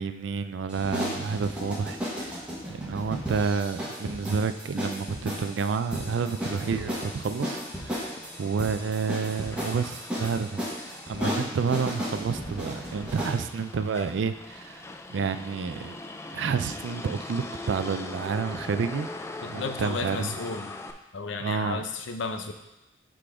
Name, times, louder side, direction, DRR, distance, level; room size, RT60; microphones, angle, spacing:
voice 1, 0.0-2.4 2.7-16.0 16.3-19.1 19.5-20.3 21.4-21.8, right 5 dB, 75° right, 11 dB, 0.4 m, -30 dB
sound 1, 0.7-13.4, equal, 5° right, 1.3 m, -34 dB
Motor vehicle (road), 6.1-20.9, left 2 dB, 15° left, 0.3 m, -42 dB
voice 2, 19.4-20.7 21.1-22.5, left 4 dB, 80° left, 6 dB, 0.6 m, -33 dB
6.7 x 3.8 x 4.8 m, 0.99 s
head